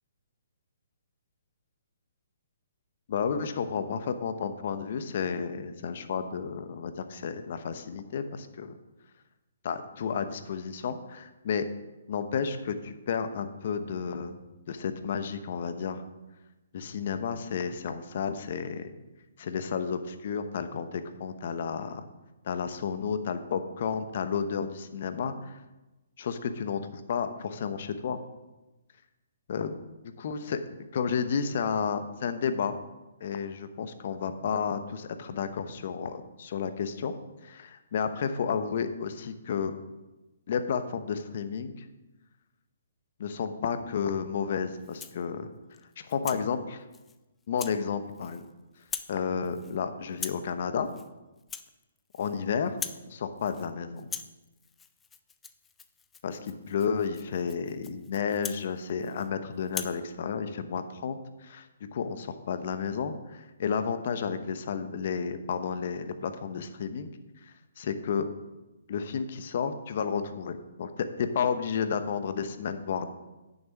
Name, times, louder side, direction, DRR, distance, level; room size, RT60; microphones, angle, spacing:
voice 1, 3.1-8.7 9.6-11.7 12.1-14.4 14.7-16.0 16.7-18.9 19.4-22.0 22.4-25.6 26.2-28.2 29.5-29.8 30.2-32.8 33.2-37.1 37.4-39.7 40.5-41.8 43.2-45.5 46.0-46.8 47.5-48.4 49.1-50.9 52.2-52.8 53.1-54.1 56.2-61.7 61.9-67.1 67.4-68.3 68.9-73.1, left 6 dB, 55° left, 9 dB, 0.9 m, -32 dB
Rattle (instrument), 44.8-45.3 45.7-46.4 46.9-47.2 47.6-47.8 48.1-48.5 48.8-49.2 49.4-49.8 50.1-50.5 50.9-51.1 51.4-52.4 52.6-53.1 53.4-53.7 54.0-59.3 59.7-60.0, left 6 dB, 10° left, 0.5 m, -41 dB
8.9 x 6.8 x 6.1 m, 1.1 s
hypercardioid pair, 135°, 0 cm